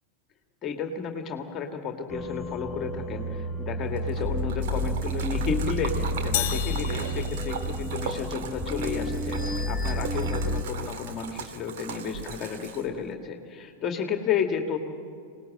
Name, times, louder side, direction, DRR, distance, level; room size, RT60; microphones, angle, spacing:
voice 1, 0.6-14.8, left 6 dB, 30° left, 5 dB, 2.0 m, -32 dB
sound 1, 2.1-10.6, equal, 10° left, 1.3 m, -30 dB
Splash splatter, 4.0-13.1, right 6 dB, 55° right, 2.1 m, -38 dB
sound 2, 6.3-8.3, left 14 dB, 50° left, 0.5 m, -33 dB
26.5 x 19.5 x 7.7 m, 2.4 s
figure-of-eight pair, 90°, 0 cm